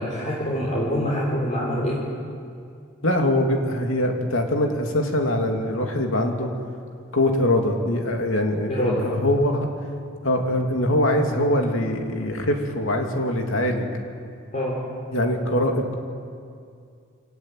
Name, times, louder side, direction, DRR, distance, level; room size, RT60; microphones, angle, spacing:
voice 1, 0.0-2.1 8.7-9.1 14.5-14.9, equal, 35° left, -5 dB, 3.7 m, -25 dB
voice 2, 3.0-6.5 7.1-9.7 10.2-13.9 15.1-15.9, left 1 dB, 85° left, 3 dB, 2.8 m, -23 dB
25.0 x 16.5 x 9.3 m, 2.3 s
head